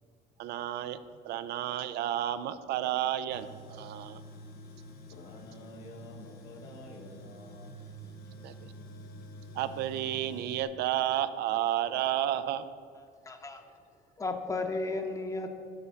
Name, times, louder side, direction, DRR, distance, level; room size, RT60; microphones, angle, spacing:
voice 1, 0.4-1.0 1.2-4.2 8.4-8.7 9.5-12.7, right 12 dB, 80° right, 13 dB, 0.5 m, -31 dB
Tools, 3.3-10.6, right 1 dB, 65° left, 0.9 m, -48 dB
voice 2, 5.1-8.0 8.4-8.5, left 2 dB, 90° left, 1 dB, 1.3 m, -50 dB
voice 3, 13.3-13.6 14.2-15.5, left 3 dB, 20° left, 6 dB, 0.8 m, -33 dB
6.9 x 5.3 x 6.9 m, 2.3 s
cardioid pair, 110°, 17 cm